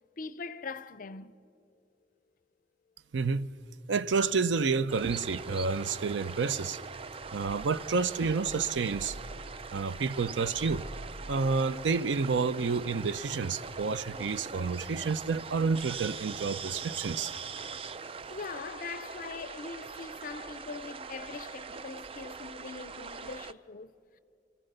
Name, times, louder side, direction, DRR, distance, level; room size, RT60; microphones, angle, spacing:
voice 1, 0.2-1.5 18.3-24.2, left 4 dB, 50° left, 0.6 m, -42 dB
voice 2, 3.1-3.5 3.9-6.8 7.3-9.2 9.7-10.8 11.3-17.3, right 4 dB, 85° right, 0.5 m, -29 dB
sound 1, 4.9-23.5, right 5 dB, 30° right, 0.4 m, -42 dB
28.5 x 14.5 x 6.7 m
head